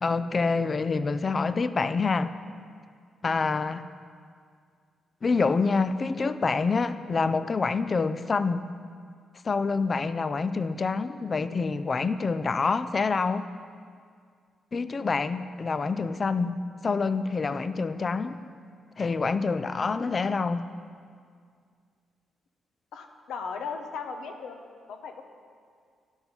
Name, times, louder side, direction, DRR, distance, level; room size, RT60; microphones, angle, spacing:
voice 1, 0.0-2.3 3.2-3.9 5.2-8.6 9.4-13.5 14.7-18.4 19.0-20.6, left 4 dB, 30° left, 12 dB, 0.3 m, -27 dB
voice 2, 22.9-24.6 24.9-25.2, left 5 dB, 80° left, 5 dB, 0.8 m, -37 dB
10.5 x 6.1 x 5.3 m, 2.1 s
cardioid pair, 140°, 0 cm